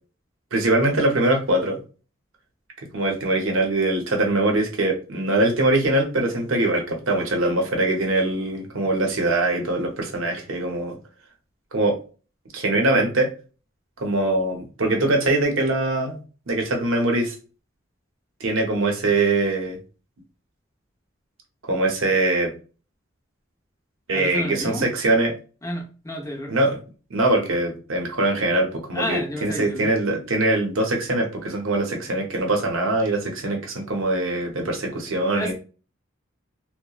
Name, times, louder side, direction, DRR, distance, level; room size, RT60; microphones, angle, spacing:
voice 1, 0.5-1.8 2.9-11.0 11.7-12.0 12.5-13.3 14.0-16.2 16.5-17.3 18.4-19.8 21.7-22.5 24.1-25.3 26.5-26.8 27.1-35.5, right 2 dB, 75° right, 2 dB, 0.7 m, -22 dB
voice 2, 24.1-24.8 25.6-26.5 28.9-29.9 35.3-35.5, left 1 dB, 15° left, 0 dB, 0.5 m, -30 dB
2.8 x 2.1 x 2.3 m, 0.36 s
head